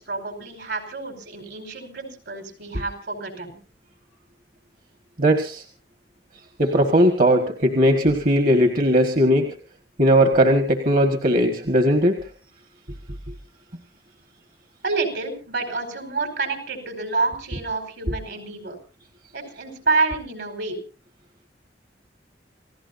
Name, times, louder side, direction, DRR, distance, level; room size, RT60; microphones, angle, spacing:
voice 1, 0.0-3.6 14.8-18.8 19.3-20.8, right 3 dB, 70° right, 6 dB, 4.8 m, -28 dB
voice 2, 5.2-5.6 6.6-9.5 10.0-12.2, equal, 50° right, 5 dB, 1.7 m, -18 dB
29.5 x 16.5 x 2.7 m, 0.35 s
head